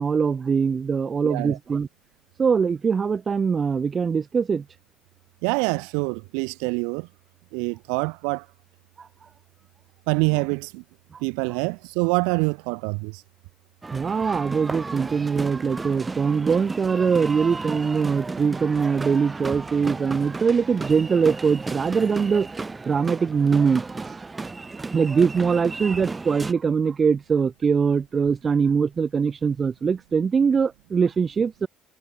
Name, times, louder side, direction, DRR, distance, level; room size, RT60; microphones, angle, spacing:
voice 1, 0.0-1.9 2.4-4.6 9.0-9.1 13.9-22.5 22.9-24.2 24.9-31.7, right 6 dB, 40° right, 0.6 m, -22 dB
voice 2, 1.2-1.6 5.4-7.1 7.5-8.4 10.1-10.8 11.2-13.2, right 39 dB, 90° right, 0.8 m, -25 dB
sound 1, 13.8-26.5, right 3 dB, 25° right, 0.9 m, -34 dB
supercardioid pair, 75°, 0 cm